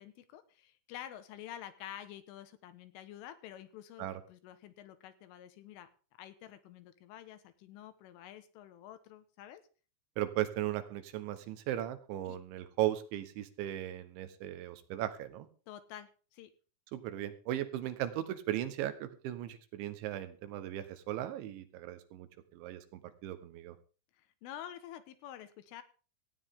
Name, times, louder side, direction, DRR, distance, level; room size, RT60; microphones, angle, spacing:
voice 1, 0.0-5.9 6.2-9.6 12.3-12.4 15.7-16.5 24.2-25.8, left 11 dB, 80° left, 11 dB, 3.9 m, -49 dB
voice 2, 10.2-15.5 16.9-23.8, right 13 dB, 75° right, 12 dB, 3.3 m, -37 dB
17.5 x 15.0 x 3.7 m, 0.38 s
omnidirectional pair, 5.7 m